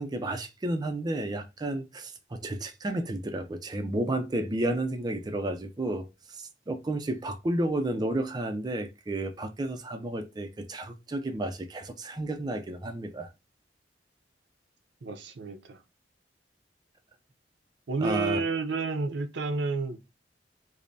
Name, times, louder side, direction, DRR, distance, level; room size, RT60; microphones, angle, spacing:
voice 1, 0.0-13.3 18.0-18.4, right 1 dB, 25° right, 0.4 m, -32 dB
voice 2, 15.0-15.8 17.9-20.0, right 3 dB, 85° right, 0.6 m, -30 dB
5.0 x 2.0 x 2.7 m
head